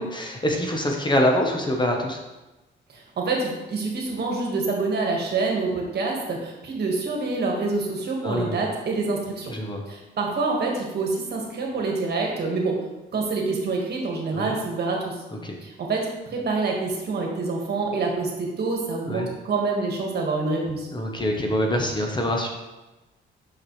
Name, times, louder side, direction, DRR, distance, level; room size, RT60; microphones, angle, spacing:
voice 1, 0.0-2.2 8.2-8.6 9.5-9.8 14.3-14.5 15.4-15.5 19.1-19.3 20.9-22.5, left 1 dB, 25° left, 1 dB, 0.9 m, -24 dB
voice 2, 2.9-9.5 9.9-12.9 13.1-15.2 15.6-20.9, right 3 dB, 55° right, -1 dB, 1.6 m, -26 dB
5.9 x 5.9 x 3.2 m, 1.1 s
cardioid pair, 90°, 20 cm